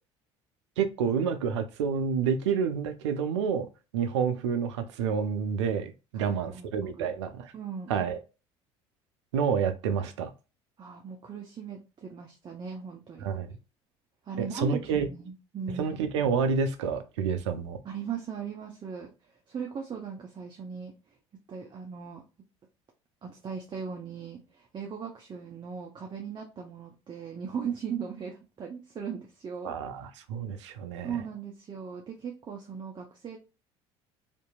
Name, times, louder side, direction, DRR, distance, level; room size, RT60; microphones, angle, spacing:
voice 1, 0.8-3.7 3.9-7.5 7.9-8.2 9.3-10.3 13.2-13.5 14.4-15.1 15.8-17.8 29.6-31.1, right 6 dB, 80° right, 0.5 m, -29 dB
voice 2, 6.1-6.7 7.0-7.1 7.5-7.9 10.8-13.3 14.2-16.0 17.8-19.1 19.5-21.0 21.5-22.2 23.2-29.7 31.0-33.4, right 7 dB, 30° right, 0.7 m, -38 dB
2.7 x 2.6 x 2.2 m
hypercardioid pair, 70°, 15 cm